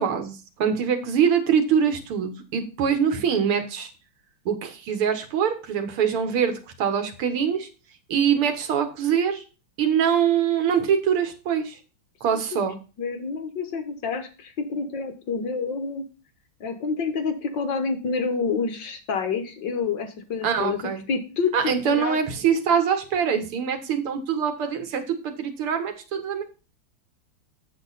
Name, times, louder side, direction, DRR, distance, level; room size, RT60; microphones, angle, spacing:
voice 1, 0.0-3.9 4.5-7.7 8.1-9.4 9.8-11.7 12.2-12.8 20.4-21.0 21.5-26.4, right 7 dB, 90° right, 7 dB, 2.3 m, -24 dB
voice 2, 13.0-16.0 16.6-22.2, left 5 dB, 60° left, 7 dB, 1.8 m, -28 dB
7.9 x 7.2 x 4.0 m, 0.33 s
omnidirectional pair, 2.3 m